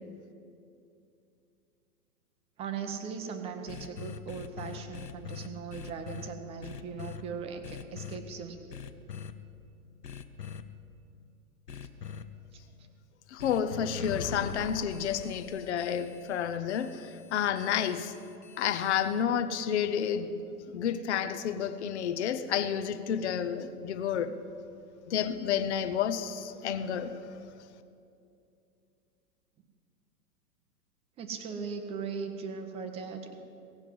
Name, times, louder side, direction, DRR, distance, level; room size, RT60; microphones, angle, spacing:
voice 1, 2.6-8.7 12.5-12.9 31.2-33.3, right 6 dB, 10° right, 6 dB, 0.7 m, -39 dB
sound 1, 3.7-6.3 6.6-7.2 7.6-8.2 8.7-9.3 10.0-10.6 11.7-12.2 13.4-19.2, left 6 dB, 75° left, 0.9 m, -42 dB
voice 2, 13.3-18.1 18.6-20.4 20.7-24.4 25.1-27.4, left 8 dB, 45° left, 10 dB, 0.8 m, -30 dB
17.0 x 7.3 x 7.6 m, 2.6 s
figure-of-eight pair, 110°, 48 cm